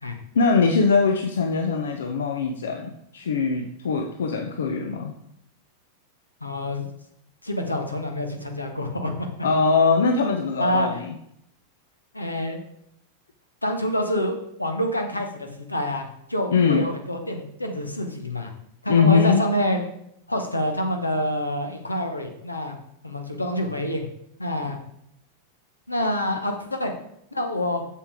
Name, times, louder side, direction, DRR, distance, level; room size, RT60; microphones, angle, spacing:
voice 1, 0.3-5.1 9.4-11.1 16.5-16.9 18.9-19.5, left 5 dB, 65° left, 4 dB, 0.6 m, -21 dB
voice 2, 6.4-6.8 7.4-9.3 10.6-10.9 12.1-12.6 13.6-18.5 18.8-19.8 20.3-22.8 23.0-24.1 24.4-24.8 25.9-26.9 27.3-27.8, left 1 dB, 85° left, 4 dB, 1.0 m, -27 dB
6.9 x 6.8 x 3.6 m, 0.73 s
figure-of-eight pair, 90°, 0 cm